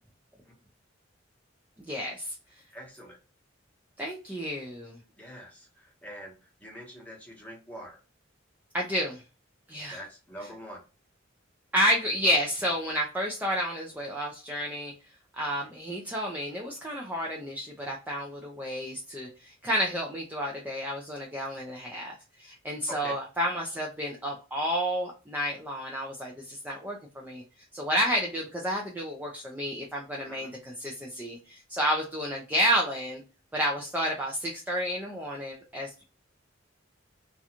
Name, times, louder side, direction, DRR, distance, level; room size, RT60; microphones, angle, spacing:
voice 1, 1.9-2.3 4.0-4.9 8.7-9.2 9.7-10.0 11.7-14.9 15.4-27.4 27.7-33.2 33.5-36.0, equal, 10° right, -2 dB, 0.4 m, -30 dB
voice 2, 2.7-3.2 5.2-6.3 6.6-8.0 9.9-10.8 15.5-15.7 22.9-23.2 30.2-30.5, equal, 10° left, -2 dB, 0.9 m, -44 dB
2.4 x 2.2 x 2.8 m, 0.32 s
head